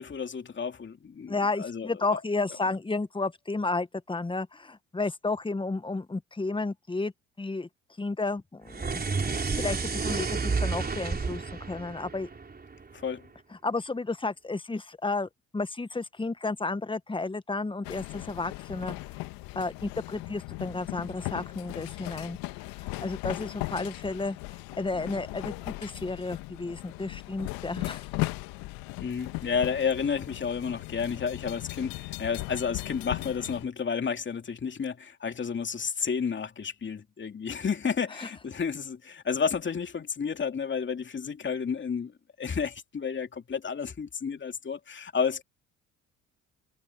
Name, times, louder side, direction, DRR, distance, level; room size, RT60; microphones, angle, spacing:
voice 1, 0.0-2.2 12.9-13.3 29.0-45.4, left 6 dB, 30° left, 2.7 m, -31 dB
voice 2, 1.3-7.1 7.4-7.7 8.0-9.0 9.5-12.3 13.6-18.9 19.5-22.4 23.0-24.4 24.8-28.1 38.2-38.3, left 3 dB, 15° left, 1.4 m, -32 dB
sound 1, 8.7-13.1, right 4 dB, 25° right, 4.1 m, -31 dB
sound 2, 17.8-33.6, left 22 dB, 70° left, 1.8 m, -38 dB
hypercardioid pair, 60°, 36 cm